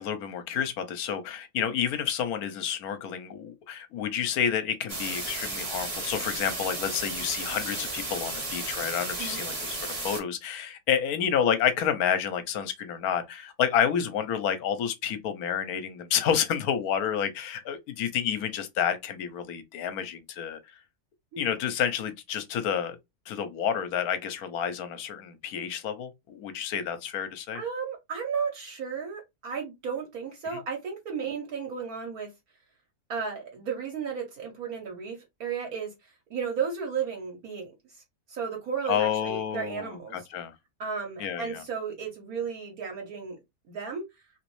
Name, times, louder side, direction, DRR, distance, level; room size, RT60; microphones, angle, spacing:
voice 1, 0.0-20.6 21.4-23.0 23.3-27.6 30.5-30.6 38.9-40.5 41.2-41.6, left 8 dB, 70° left, 1.1 m, -29 dB
sound 1, 4.9-10.2, right 2 dB, 30° right, 0.8 m, -34 dB
voice 2, 27.5-32.3 33.1-38.0 38.3-40.3 40.8-43.4 43.7-44.0, right 6 dB, 70° right, 1.4 m, -34 dB
3.0 x 3.0 x 3.0 m
omnidirectional pair, 1.7 m